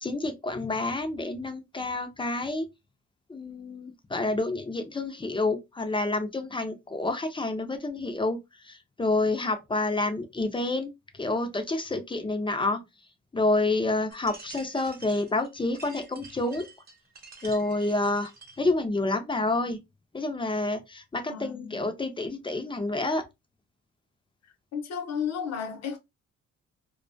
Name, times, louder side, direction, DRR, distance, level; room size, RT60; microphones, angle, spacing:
voice 1, 0.0-2.7 3.3-8.4 8.6-12.8 13.3-16.7 17.4-18.3 18.6-19.8 20.1-23.2, left 2 dB, 15° left, 0.4 m, -28 dB
sound 1, 14.1-18.7, right 4 dB, 30° right, 0.8 m, -49 dB
voice 2, 21.3-21.9 24.7-26.0, left 7 dB, 60° left, 0.8 m, -33 dB
2.3 x 2.2 x 2.5 m
cardioid pair, 90°, 30 cm